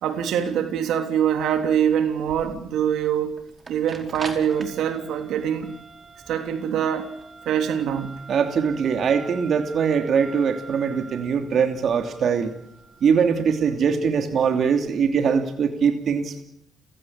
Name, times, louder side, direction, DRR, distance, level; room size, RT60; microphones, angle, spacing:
voice 1, 0.0-3.4 3.7-5.7 6.3-7.1 7.4-8.2, right 9 dB, 80° right, 7 dB, 3.2 m, -24 dB
sound 1, 1.3-15.4, right 4 dB, 35° right, 4.8 m, -44 dB
voice 2, 8.3-12.5 13.0-16.4, right 6 dB, 60° right, 6 dB, 2.8 m, -22 dB
30.0 x 17.0 x 8.6 m, 0.75 s
cardioid pair, 90°, 0 cm